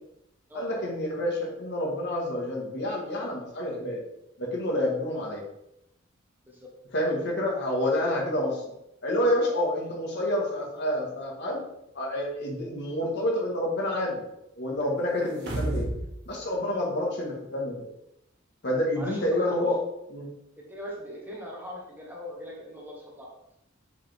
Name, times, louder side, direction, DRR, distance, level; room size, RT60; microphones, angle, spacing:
voice 1, 0.5-4.0 4.4-5.4 6.9-8.6 9.0-11.6 12.0-14.2 14.6-15.9 16.3-17.9 18.6-19.8 20.1-20.3, left 1 dB, 60° left, -2 dB, 1.9 m, -28 dB
sound 1, 15.2-16.1 16.4-16.5, right 1 dB, 60° right, 1.4 m, -30 dB
voice 2, 18.9-19.7 20.6-23.3, equal, 10° right, -3 dB, 1.3 m, -40 dB
7.1 x 4.9 x 3.7 m, 0.83 s
head